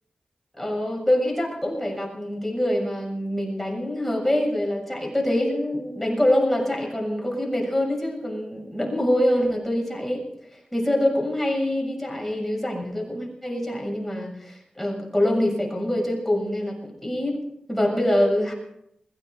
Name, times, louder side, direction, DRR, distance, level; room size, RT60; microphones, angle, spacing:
voice 1, 0.6-10.2 10.7-17.4 17.7-18.5, left 1 dB, 5° left, 0 dB, 7.0 m, -25 dB
21.0 x 16.0 x 4.0 m, 0.76 s
cardioid pair, 60°, 2 cm